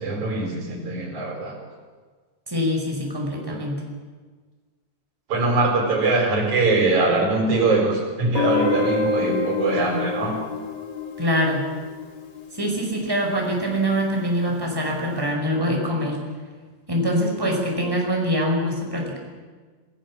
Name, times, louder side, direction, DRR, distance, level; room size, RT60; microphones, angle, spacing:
voice 1, 0.0-1.6 3.5-3.6 5.3-10.4, right 3 dB, 80° right, 2 dB, 5.4 m, -22 dB
voice 2, 2.5-3.8 11.2-11.7 12.5-16.2 16.9-19.2, equal, 5° right, 0 dB, 5.0 m, -24 dB
Guitar, 8.3-13.2, left 3 dB, 40° left, 2.6 m, -27 dB
26.5 x 17.5 x 7.3 m, 1.4 s
omnidirectional pair, 3.3 m